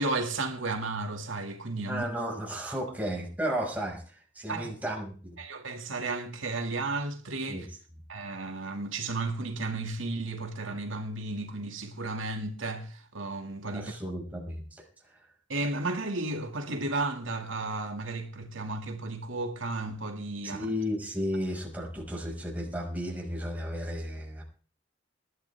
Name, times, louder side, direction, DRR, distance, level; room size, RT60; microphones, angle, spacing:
voice 1, 0.0-2.0 4.5-4.7 5.4-7.7 8.1-13.9 15.5-20.7, right 2 dB, 80° right, 2.3 m, -33 dB
voice 2, 1.9-5.4 7.5-7.6 13.7-14.8 20.4-24.4, equal, 10° right, 5.7 m, -34 dB
20.5 x 12.5 x 3.5 m
head